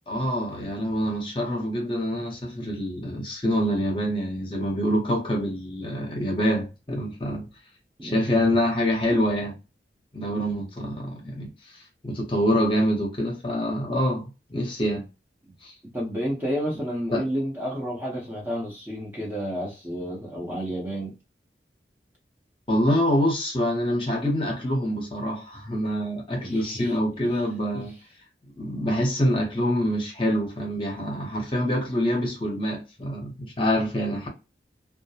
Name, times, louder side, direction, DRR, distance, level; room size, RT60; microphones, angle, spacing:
voice 1, 0.1-7.5 8.0-9.5 10.1-15.0 15.6-15.7 17.1-17.2 22.7-28.0 28.6-34.3, equal, 30° left, 0.7 m, -26 dB
voice 2, 8.0-8.7 15.9-21.1 26.4-26.9 27.2-27.4 27.7-27.9, equal, 10° right, 0.6 m, -31 dB
2.3 x 2.1 x 2.6 m
head